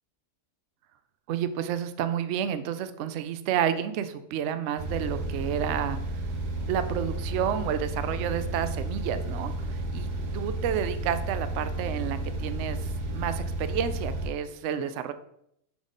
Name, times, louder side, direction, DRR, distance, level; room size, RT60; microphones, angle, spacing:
voice 1, 1.3-6.0 6.7-15.1, right 9 dB, 65° right, 11 dB, 0.7 m, -30 dB
sound 1, 4.8-14.3, right 1 dB, 80° right, 1.5 m, -32 dB
7.1 x 4.2 x 5.0 m, 0.76 s
omnidirectional pair, 1.6 m